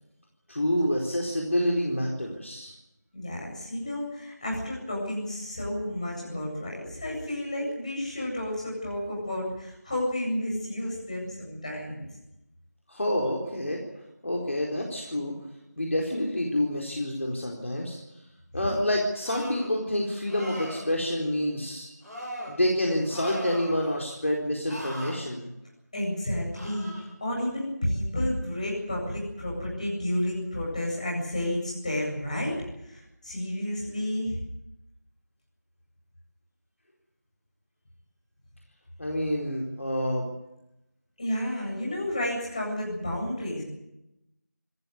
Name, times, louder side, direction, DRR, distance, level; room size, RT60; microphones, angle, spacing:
voice 1, 0.5-2.7 12.9-13.8 14.2-15.3 15.8-18.0 18.5-21.9 22.5-25.5 39.0-40.3, left 1 dB, 45° left, -1 dB, 4.3 m, -28 dB
voice 2, 3.1-12.0 18.5-18.6 25.9-26.9 27.2-32.6 32.8-34.4 41.2-43.6, left 1 dB, 25° left, -2 dB, 8.0 m, -31 dB
sound 1, 19.2-19.7 20.2-20.9 22.0-22.5 23.1-23.9 24.6-25.1 26.5-27.0, equal, 5° left, 4.5 m, -39 dB
26.5 x 15.0 x 9.6 m, 0.88 s
figure-of-eight pair, 175°, 9 cm